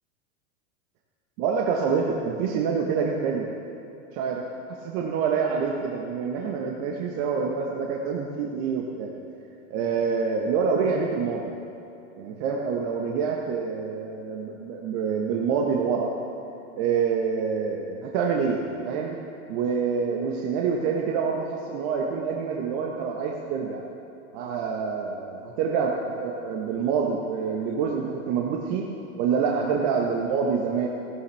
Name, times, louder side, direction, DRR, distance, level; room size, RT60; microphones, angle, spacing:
voice 1, 1.4-3.4 4.1-4.4 4.8-9.1 9.7-11.5 12.2-16.1 16.8-19.2 19.5-23.8 24.3-28.8 29.2-30.9, right 5 dB, 55° right, 0 dB, 1.4 m, -26 dB
15.0 x 12.5 x 3.4 m, 2.8 s
hypercardioid pair, 105°, 39 cm